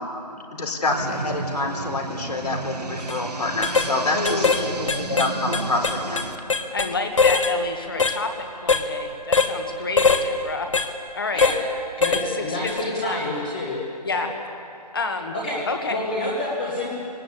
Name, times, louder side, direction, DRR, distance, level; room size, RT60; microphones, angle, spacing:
voice 1, 0.6-6.2, left 2 dB, 65° left, 3 dB, 4.1 m, -27 dB
sound 1, 0.8-6.4, right 4 dB, 70° right, 1.7 m, -32 dB
sound 2, 3.0-3.2 3.6-3.9 4.3-4.6 4.9-6.9 7.2-7.5 8.0-8.2 8.7-8.9 9.3-9.5 10.0-10.2 10.7-10.9 11.4-11.6 12.0-12.3 12.7-12.8, left 5 dB, 50° left, 1.5 m, -21 dB
voice 2, 4.1-4.7 6.7-10.7 11.1-11.5 12.1-13.3 14.0-14.3 14.9-15.3 15.7-16.0, left 3 dB, 35° left, 5 dB, 1.8 m, -29 dB
voice 3, 12.0-13.8 14.1-14.2 15.3-15.6 15.9-16.9, left 2 dB, 15° left, -4 dB, 1.4 m, -28 dB
22.0 x 19.0 x 8.5 m, 2.5 s
figure-of-eight pair, 175°, 21 cm